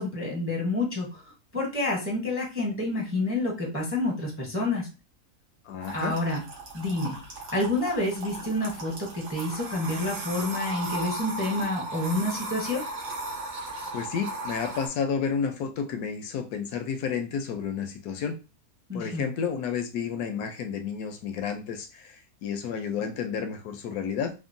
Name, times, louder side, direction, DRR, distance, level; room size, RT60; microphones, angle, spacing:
voice 1, 0.0-4.9 5.9-6.4 6.7-7.2 7.5-12.8 18.9-19.3, left 2 dB, 15° right, -2 dB, 0.5 m, -28 dB
voice 2, 5.7-6.2 13.9-18.4 18.9-24.3, left 6 dB, 80° left, 7 dB, 1.1 m, -31 dB
sound 1, 5.8-14.9, right 2 dB, 85° right, 1.4 m, -36 dB
3.6 x 2.0 x 2.5 m, 0.31 s
omnidirectional pair, 1.6 m